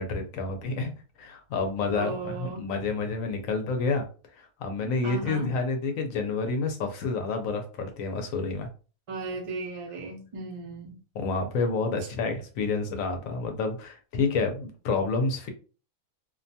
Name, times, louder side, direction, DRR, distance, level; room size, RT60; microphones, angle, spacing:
voice 1, 0.0-4.1 4.4-8.7 11.2-15.5, left 4 dB, 75° left, 1.0 m, -29 dB
voice 2, 1.9-2.7 5.0-5.5 9.1-11.0, right 3 dB, 35° right, 0.5 m, -36 dB
2.6 x 2.2 x 2.6 m
omnidirectional pair, 1.5 m